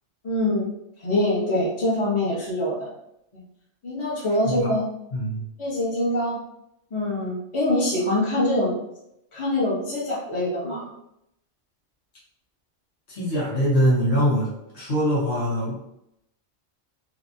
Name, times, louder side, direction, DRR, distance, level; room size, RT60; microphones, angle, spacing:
voice 1, 0.2-0.7 1.0-2.9 3.3-3.4 3.8-4.9 5.6-6.4 6.9-8.7 9.3-10.9, left 1 dB, 25° left, -8 dB, 1.0 m, -24 dB
voice 2, 5.1-5.4 13.1-14.5 14.7-15.8, equal, 60° left, -6 dB, 1.2 m, -23 dB
3.1 x 2.5 x 2.6 m, 0.81 s
omnidirectional pair, 1.3 m